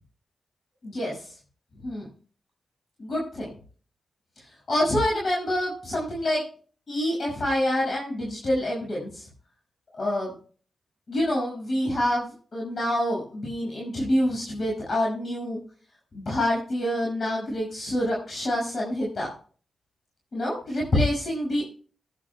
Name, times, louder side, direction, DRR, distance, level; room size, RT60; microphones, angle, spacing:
voice 1, 0.8-1.3 1.8-2.1 3.0-3.5 4.7-6.4 6.9-9.3 10.0-10.3 11.1-15.6 16.1-19.3 20.3-21.6, left 1 dB, 55° left, -3 dB, 5.9 m, -27 dB
17.0 x 11.0 x 2.2 m, 0.42 s
cardioid pair, 55°, 0 cm